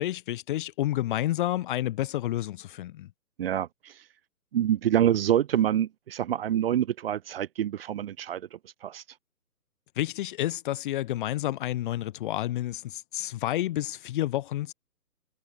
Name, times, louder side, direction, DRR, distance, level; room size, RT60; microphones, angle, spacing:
voice 1, 0.0-3.1 10.0-14.7, left 14 dB, 30° left, 2.9 m, -30 dB
voice 2, 3.4-3.9 4.5-9.0, right 10 dB, 35° right, 1.8 m, -26 dB
figure-of-eight pair, 145°, 49 cm